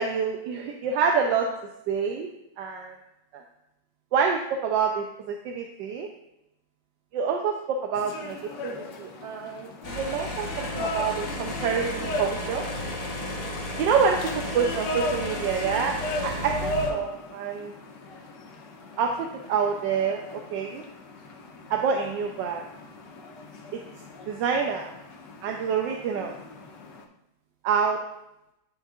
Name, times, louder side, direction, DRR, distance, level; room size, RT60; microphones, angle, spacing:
voice 1, 0.0-1.4 1.9-2.3 2.6-2.9 3.3-3.4 4.1-6.1 7.1-7.5 7.9-8.4 8.6-12.6 13.8-14.2 14.5-15.9 16.2-17.7 19.0-19.1 19.5-20.2 20.5-20.8 21.7-22.6 24.3-24.9 25.4-26.3 27.6-28.0, right 6 dB, 90° right, 2 dB, 1.3 m, -27 dB
sound 1, 7.9-27.1, left 1 dB, 90° left, 1.5 m, -37 dB
sound 2, 9.8-16.9, left 1 dB, 30° left, 0.8 m, -33 dB
10.5 x 4.6 x 2.4 m, 0.88 s
omnidirectional pair, 1.9 m